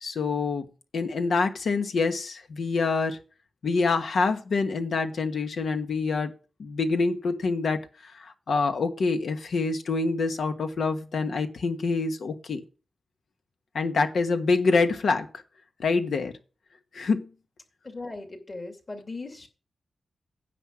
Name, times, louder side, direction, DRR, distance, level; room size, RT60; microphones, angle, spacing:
voice 1, 0.0-0.7 0.9-3.2 3.6-6.3 6.6-12.6 13.7-15.3 15.8-16.3 16.9-17.3, left 4 dB, 70° left, 1.3 m, -26 dB
voice 2, 17.8-19.5, left 2 dB, 35° left, 2.4 m, -38 dB
9.9 x 6.1 x 6.2 m
wide cardioid pair, 125°, 0 cm